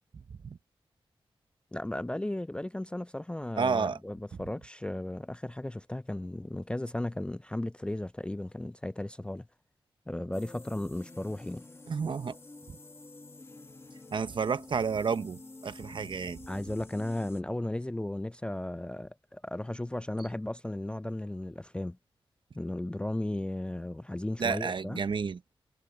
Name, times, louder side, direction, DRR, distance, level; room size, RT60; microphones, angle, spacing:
voice 1, 1.7-9.4 10.1-11.6 16.5-22.0 22.5-25.0, left 1 dB, 10° left, 0.3 m, -35 dB
voice 2, 3.6-4.0 11.9-12.4 12.7-12.8 14.1-16.4 24.4-25.4, right 5 dB, 55° right, 0.9 m, -31 dB
sound 1, 10.3-17.4, left 2 dB, 25° left, 1.2 m, -49 dB
cardioid pair, 75°, 10 cm